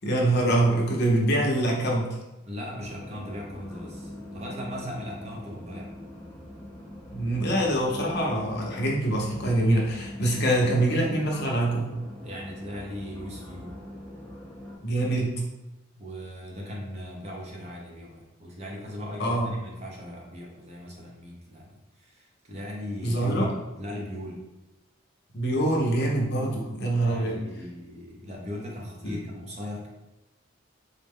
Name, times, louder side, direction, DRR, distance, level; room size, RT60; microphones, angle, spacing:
voice 1, 0.0-2.1 7.1-11.9 14.8-15.3 19.2-19.5 23.0-23.5 25.3-27.4 29.0-29.1, right 1 dB, 50° left, -2 dB, 0.7 m, -24 dB
voice 2, 2.5-5.9 12.2-13.7 16.0-24.4 27.0-29.9, left 1 dB, 30° right, -2 dB, 0.7 m, -38 dB
sound 1, 2.7-14.8, left 1 dB, 5° left, 0.8 m, -42 dB
3.9 x 2.1 x 3.5 m, 1.0 s
head